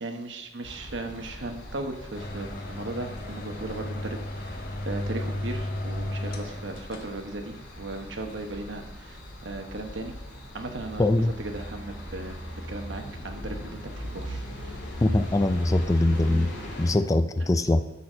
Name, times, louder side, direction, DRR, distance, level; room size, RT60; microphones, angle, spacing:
voice 1, 0.0-4.6 4.9-9.2 9.4-10.1 10.5-11.1 11.4-14.7 17.4-17.5, right 2 dB, 85° right, 5 dB, 1.1 m, -37 dB
sound 1, 0.6-16.9, equal, 85° left, 2.6 m, -40 dB
sound 2, 2.1-7.2, left 1 dB, 50° left, 1.2 m, -34 dB
voice 2, 11.0-11.3 15.0-16.5 16.8-17.8, left 2 dB, 20° left, 10 dB, 0.4 m, -22 dB
11.0 x 4.1 x 7.3 m, 1.0 s
head